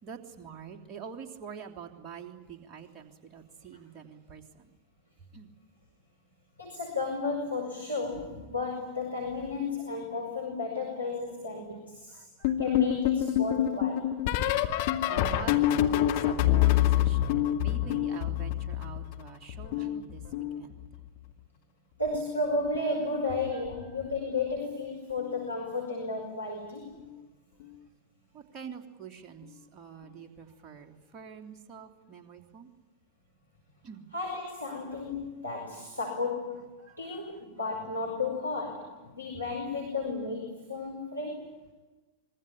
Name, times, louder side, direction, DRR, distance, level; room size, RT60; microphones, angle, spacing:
voice 1, 0.0-4.4 5.3-5.5 12.2-12.6 15.1-20.8 23.8-24.0 28.3-32.7 33.8-34.1 36.8-37.0, right 7 dB, 30° right, 3 dB, 3.3 m, -45 dB
voice 2, 6.6-12.2 12.6-14.1 22.0-27.0 34.1-36.7 37.0-41.5, left 3 dB, 85° left, -1 dB, 5.7 m, -33 dB
sound 1, 12.4-19.2 19.5-21.1 22.1-22.4 22.7-23.0 24.6-24.8 25.2-25.4 27.0-27.1, left 12 dB, 50° left, 2.2 m, -27 dB
26.0 x 22.5 x 9.9 m, 1.2 s
figure-of-eight pair, 90°, 0 cm